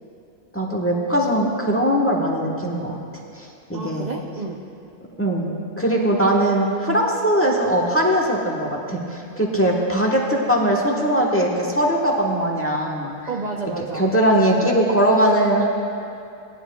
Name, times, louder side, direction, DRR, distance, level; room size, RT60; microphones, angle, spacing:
voice 1, 0.5-3.0 3.4-4.1 5.2-5.5 5.8-13.1 13.9-15.7, right 1 dB, 10° left, -1 dB, 1.1 m, -20 dB
voice 2, 3.7-4.6 13.3-14.1, right 3 dB, 45° right, -1 dB, 0.5 m, -30 dB
19.0 x 11.0 x 2.3 m, 2.5 s
omnidirectional pair, 1.7 m